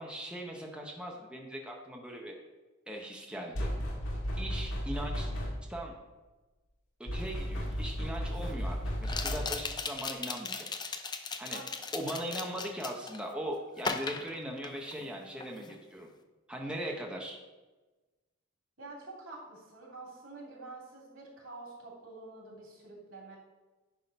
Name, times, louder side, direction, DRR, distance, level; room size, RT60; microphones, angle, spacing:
voice 1, 0.0-2.3 2.9-3.7 4.4-5.3 5.7-5.9 7.0-10.7 11.4-11.6 11.9-16.1 16.5-17.4, right 1 dB, 5° right, 0 dB, 0.8 m, -39 dB
sound 1, 3.5-5.8 7.1-9.7, equal, 85° left, 1.8 m, -34 dB
sound 2, 7.3-7.4 9.0-13.2 13.8-15.1 15.4-15.7, left 4 dB, 20° left, 0.5 m, -37 dB
voice 2, 11.9-12.4 18.8-23.4, right 2 dB, 80° right, -2 dB, 2.7 m, -47 dB
9.9 x 3.7 x 5.2 m, 1.2 s
head